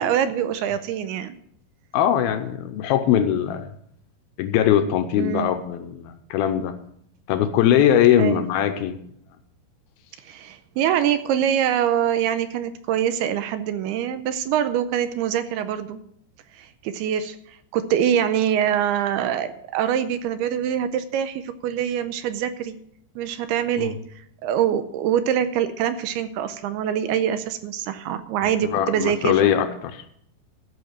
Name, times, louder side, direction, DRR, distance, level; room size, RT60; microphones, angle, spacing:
voice 1, 0.0-1.4 5.2-5.5 8.2-8.5 10.3-16.0 16.5-17.4 17.7-22.8 23.2-24.0 24.4-29.5, right 9 dB, 80° right, 11 dB, 2.5 m, -24 dB
voice 2, 1.9-3.7 4.4-6.7 7.3-9.0 23.8-23.9 28.4-30.0, left 10 dB, 80° left, 8 dB, 2.3 m, -21 dB
14.0 x 5.7 x 7.5 m, 0.70 s
omnidirectional pair, 4.9 m